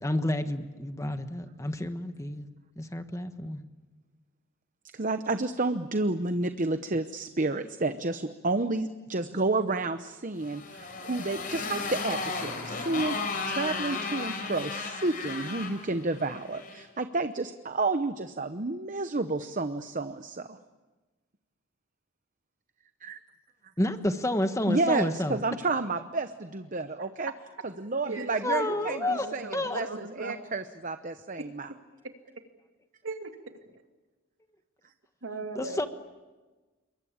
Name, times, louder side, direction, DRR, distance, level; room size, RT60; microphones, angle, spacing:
voice 1, 0.0-2.5 2.8-3.6 23.8-25.4 28.4-29.3 29.5-29.8 35.5-35.9, left 1 dB, 15° left, 8 dB, 1.3 m, -30 dB
voice 2, 4.9-13.2 13.4-20.6 23.0-23.2 24.7-27.3 27.6-31.7, right 3 dB, 40° right, 9 dB, 0.9 m, -30 dB
Motorcycle, 10.4-16.8, left 4 dB, 45° left, 4.5 m, -35 dB
voice 3, 27.0-27.3 28.0-30.4 31.4-31.8 32.0-32.4 33.0-33.6 35.2-35.8, right 3 dB, 70° right, 5 dB, 2.6 m, -39 dB
28.0 x 23.0 x 8.7 m, 1.2 s
head